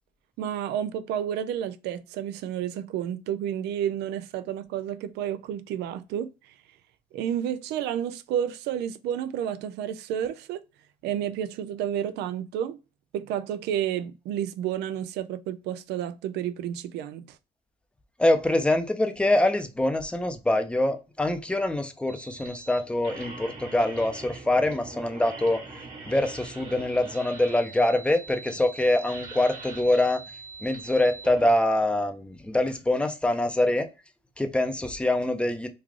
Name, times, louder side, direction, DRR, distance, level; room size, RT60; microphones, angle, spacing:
voice 1, 0.4-6.5 7.1-10.6 11.0-12.8 13.1-17.4, right 10 dB, 80° right, 0.4 m, -31 dB
voice 2, 18.2-25.6 26.1-30.2 30.6-33.9 34.4-35.7, left 1 dB, 5° left, 0.6 m, -24 dB
sound 1, 22.1-31.5, right 3 dB, 50° right, 1.6 m, -42 dB
3.2 x 2.4 x 3.5 m
cardioid pair, 110°, 17 cm